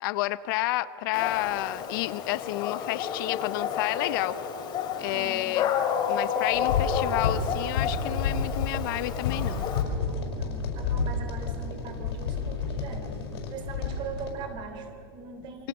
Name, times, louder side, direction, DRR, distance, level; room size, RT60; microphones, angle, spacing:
voice 1, 0.0-4.4 5.0-5.7 6.1-9.6, left 16 dB, 55° left, 15 dB, 0.7 m, -30 dB
Dog, 1.1-9.8, left 8 dB, 35° left, 2.7 m, -31 dB
voice 2, 4.9-5.5 9.5-15.7, right 5 dB, 40° right, 7 dB, 3.4 m, -41 dB
sound 1, 6.5-14.3, left 5 dB, 85° left, 5.5 m, -30 dB
28.5 x 24.0 x 6.1 m, 2.7 s
supercardioid pair, 145°, 13 cm